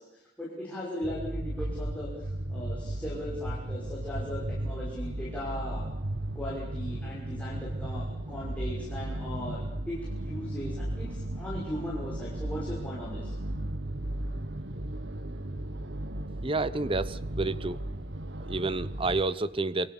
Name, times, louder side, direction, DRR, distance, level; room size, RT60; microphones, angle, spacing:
voice 1, 0.0-5.9 6.3-13.3, equal, 10° left, -6 dB, 5.9 m, -38 dB
sound 1, 1.0-19.2, right 1 dB, 80° right, 1.3 m, -35 dB
voice 2, 16.4-17.8 18.5-19.9, right 3 dB, 30° right, 16 dB, 0.9 m, -29 dB
28.5 x 23.0 x 7.2 m, 0.94 s
head